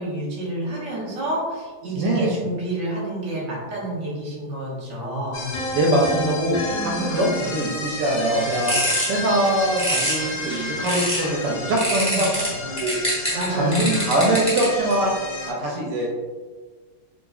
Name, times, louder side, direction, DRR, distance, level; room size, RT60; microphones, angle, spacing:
voice 1, 0.0-5.5 6.6-7.1 12.0-12.2 13.3-13.9, right 1 dB, 55° right, -5 dB, 0.9 m, -29 dB
voice 2, 1.9-2.4 5.7-8.7 9.1-12.9 13.5-15.1 15.4-16.1, right 1 dB, 75° right, -2 dB, 1.1 m, -22 dB
sound 1, 5.3-15.5, left 3 dB, 70° left, 0.8 m, -32 dB
sound 2, 5.5-8.4, equal, 90° left, 1.9 m, -33 dB
sound 3, 8.3-11.3 11.8-14.9, equal, 10° left, 0.3 m, -26 dB
3.8 x 2.8 x 2.3 m, 1.4 s
omnidirectional pair, 2.3 m